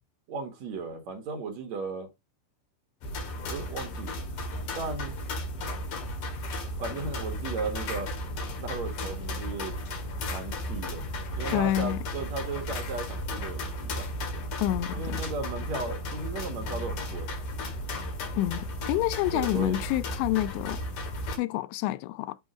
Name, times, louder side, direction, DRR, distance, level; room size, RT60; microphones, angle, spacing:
voice 1, 0.3-2.1 3.5-4.2 4.7-5.2 6.6-8.1 8.6-9.8 10.3-11.0 11.3-14.1 14.9-17.4 19.3-19.8, right 4 dB, 75° right, 1.6 m, -36 dB
sound 1, 3.0-21.4, left 1 dB, 55° left, 2.7 m, -34 dB
voice 2, 11.5-12.0 14.6-15.2 18.4-20.8 21.3-22.4, left 15 dB, 85° left, 2.5 m, -28 dB
8.9 x 3.8 x 5.0 m
omnidirectional pair, 5.6 m